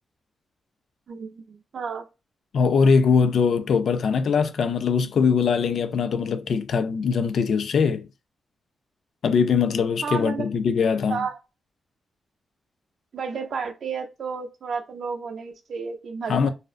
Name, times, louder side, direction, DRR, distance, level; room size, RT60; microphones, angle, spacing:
voice 1, 1.1-2.0 10.0-10.4 11.1-11.4 13.1-16.5, right 5 dB, 55° right, 0.5 m, -32 dB
voice 2, 2.5-8.1 9.2-11.2 16.3-16.5, left 5 dB, 60° left, 0.3 m, -21 dB
2.5 x 2.0 x 2.4 m
wide cardioid pair, 145°, 0 cm